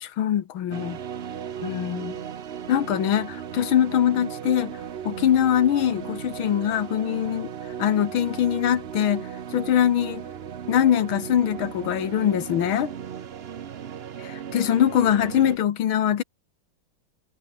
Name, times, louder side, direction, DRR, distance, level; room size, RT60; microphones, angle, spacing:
voice 1, 0.0-1.0 1.6-2.1 2.7-4.7 5.1-7.5 7.8-10.2 10.7-12.9 14.2-16.2, left 10 dB, 85° left, 2.1 m, -23 dB
sound 1, 0.7-15.6, right 8 dB, 65° right, 0.6 m, -36 dB
omnidirectional pair, 2.2 m